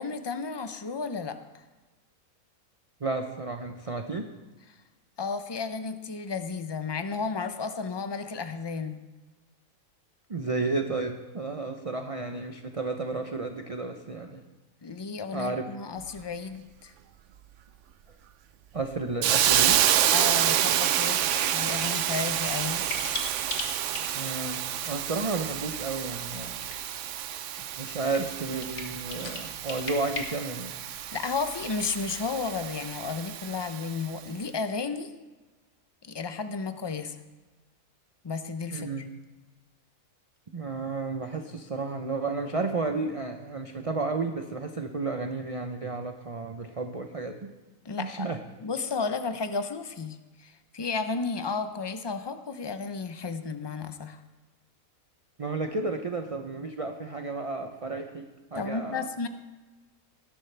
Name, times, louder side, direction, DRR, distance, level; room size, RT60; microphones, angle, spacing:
voice 1, 0.0-1.4 5.2-9.0 14.8-16.9 20.1-22.9 31.1-35.1 36.1-37.1 38.2-38.9 47.8-54.2 58.6-59.3, left 4 dB, 35° left, 9 dB, 0.4 m, -33 dB
voice 2, 3.0-4.3 10.3-14.4 15.3-15.7 18.7-19.8 24.1-26.7 27.8-30.8 38.7-39.1 40.5-47.5 48.0-48.4 55.4-58.2 58.5-59.1, right 3 dB, 35° right, 5 dB, 0.6 m, -32 dB
Hiss, 19.2-34.0, right 11 dB, 65° right, 0.8 m, -28 dB
sound 1, 20.3-30.2, left 3 dB, 55° left, 1.8 m, -42 dB
19.5 x 11.0 x 3.3 m, 1.2 s
omnidirectional pair, 1.5 m